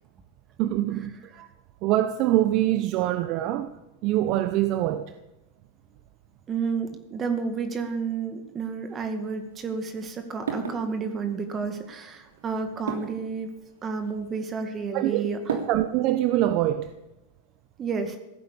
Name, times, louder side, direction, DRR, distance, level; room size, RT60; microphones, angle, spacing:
voice 1, 0.6-1.5 1.8-3.8 4.0-5.1 14.9-16.9, right 14 dB, 50° right, 0.8 m, -24 dB
voice 2, 6.5-13.5 13.8-15.5 17.8-18.2, right 5 dB, 30° right, 2.0 m, -31 dB
sound 1, 8.9-16.2, right 5 dB, 90° right, 3.0 m, -39 dB
15.5 x 9.1 x 8.5 m
hypercardioid pair, 110°, 0 cm